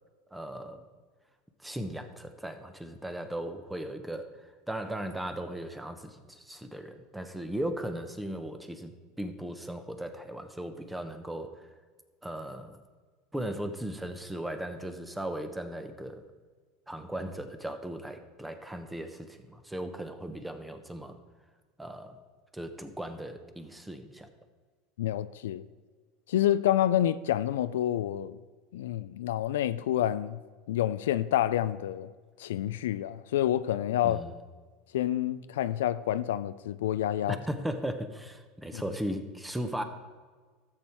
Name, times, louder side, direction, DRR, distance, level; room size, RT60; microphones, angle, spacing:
voice 1, 0.3-0.8 1.6-8.9 9.2-11.7 12.2-12.8 13.3-16.2 16.9-21.2 21.8-22.2 22.5-24.3 34.0-34.3 37.3-39.8, right 1 dB, 5° right, 1.1 m, -37 dB
voice 2, 25.0-25.6 26.3-28.4 28.7-30.4 30.7-32.1 32.4-34.2 34.9-37.4 38.7-38.8, left 12 dB, 85° left, 0.4 m, -28 dB
13.0 x 7.3 x 4.6 m
supercardioid pair, 105°, 0 cm